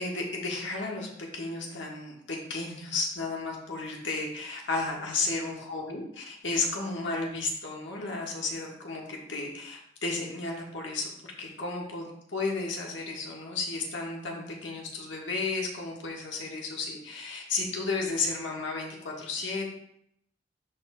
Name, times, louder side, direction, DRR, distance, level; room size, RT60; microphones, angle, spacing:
voice 1, 0.0-11.1 11.4-19.7, left 3 dB, 80° left, -1 dB, 1.4 m, -33 dB
11.0 x 3.9 x 2.3 m, 0.73 s
head